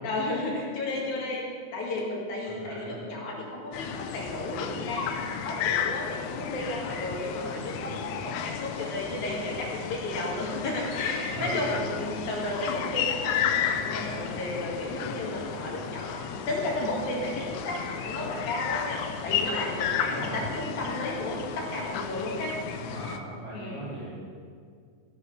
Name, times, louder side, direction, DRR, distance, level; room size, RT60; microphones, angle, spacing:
voice 1, 0.0-1.4 1.7-22.5 23.5-23.9, left 1 dB, 65° left, -2 dB, 3.2 m, -33 dB
voice 2, 2.4-2.9 7.7-8.2 11.3-11.7 13.7-14.4 15.3-15.8 19.1-19.5 19.9-20.5 22.7-24.1, right 1 dB, 30° right, -11 dB, 2.9 m, -40 dB
sound 1, 3.7-23.2, left 8 dB, 85° left, 1.6 m, -33 dB
16.0 x 11.0 x 3.3 m, 2.1 s
omnidirectional pair, 3.8 m